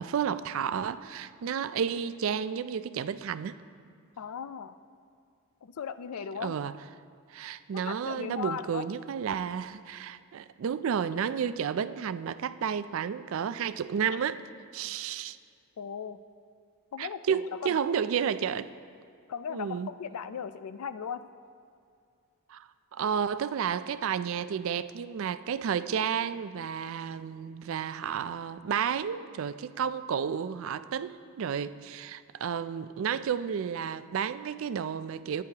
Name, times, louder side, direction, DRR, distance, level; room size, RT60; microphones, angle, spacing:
voice 1, 0.0-3.6 6.4-6.7 7.3-14.4 14.7-15.4 17.0-18.7 19.5-19.9 22.5-35.4, right 7 dB, 60° right, 14 dB, 0.3 m, -31 dB
voice 2, 4.2-4.8 5.6-6.5 7.7-8.9 15.8-16.2 16.9-17.8 19.3-21.2, left 7 dB, 80° left, 12 dB, 0.4 m, -37 dB
14.5 x 9.6 x 2.9 m, 2.4 s
head